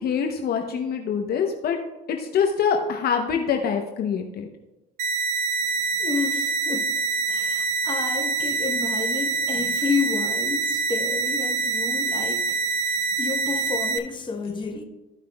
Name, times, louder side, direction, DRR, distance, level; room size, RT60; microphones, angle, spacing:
voice 1, 0.0-1.8 2.1-4.5, left 6 dB, 50° left, 0.9 m, -25 dB
sound 1, 5.0-14.0, right 4 dB, 45° right, 0.7 m, -25 dB
voice 2, 5.6-14.8, left 5 dB, 25° left, 1.2 m, -31 dB
14.0 x 5.8 x 2.3 m
supercardioid pair, 95°, 20 cm